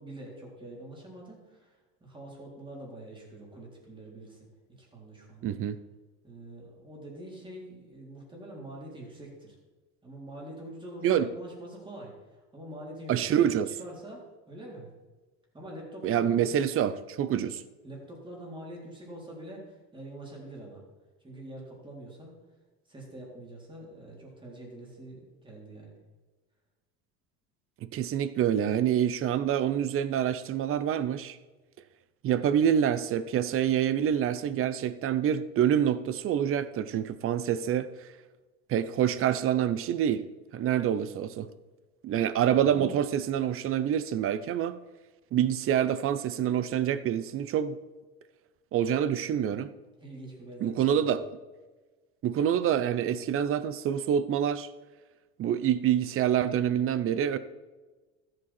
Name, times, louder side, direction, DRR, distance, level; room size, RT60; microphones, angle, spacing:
voice 1, 0.0-4.5 4.8-5.6 6.2-9.6 10.0-14.9 15.5-16.5 17.8-20.8 21.2-22.3 22.9-26.0 50.0-51.2, right 1 dB, 15° right, 3.8 m, -45 dB
voice 2, 5.4-5.8 11.0-11.3 13.1-13.7 16.0-17.6 27.8-31.4 32.2-37.9 38.7-40.2 40.5-41.5 42.0-44.8 45.3-47.8 48.7-49.7 50.6-51.2 52.2-54.7 55.4-57.4, right 9 dB, 45° right, 0.7 m, -26 dB
13.5 x 7.9 x 4.4 m
cardioid pair, 120°, 32 cm